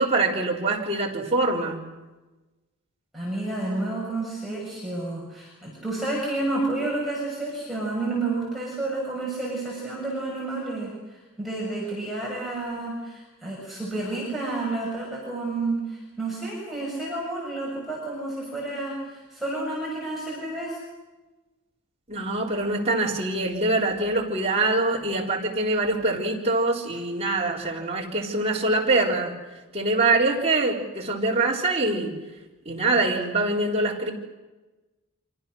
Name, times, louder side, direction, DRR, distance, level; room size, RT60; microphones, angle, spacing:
voice 1, 0.0-1.9 22.1-29.4 29.7-32.2 32.7-34.1, right 2 dB, 30° right, -2 dB, 4.1 m, -24 dB
voice 2, 3.1-20.8, right 2 dB, ahead, -5 dB, 6.6 m, -30 dB
28.5 x 25.5 x 6.4 m, 1.1 s
head